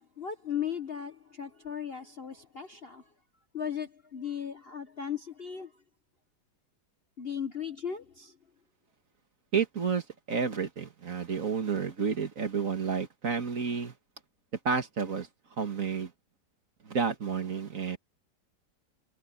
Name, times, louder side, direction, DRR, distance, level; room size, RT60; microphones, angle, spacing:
voice 1, 0.2-3.0 3.5-5.7 7.2-8.3, left 8 dB, 40° left, 1.0 m, -36 dB
voice 2, 9.5-13.9 14.7-15.3 15.6-16.1 16.8-18.0, right 6 dB, 50° right, 2.1 m, -30 dB
omnidirectional pair, 1.9 m